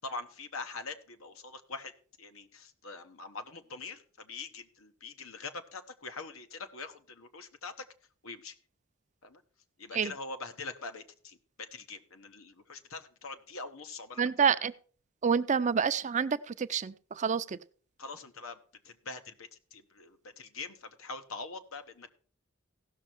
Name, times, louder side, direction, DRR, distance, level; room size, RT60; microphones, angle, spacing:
voice 1, 0.0-1.9 2.2-7.9 8.2-8.6 9.2-9.4 9.8-14.3 18.0-22.1, left 3 dB, 85° left, 1.1 m, -43 dB
voice 2, 14.2-14.7 15.2-17.6, right 6 dB, 35° right, 0.5 m, -28 dB
16.0 x 6.4 x 4.4 m
head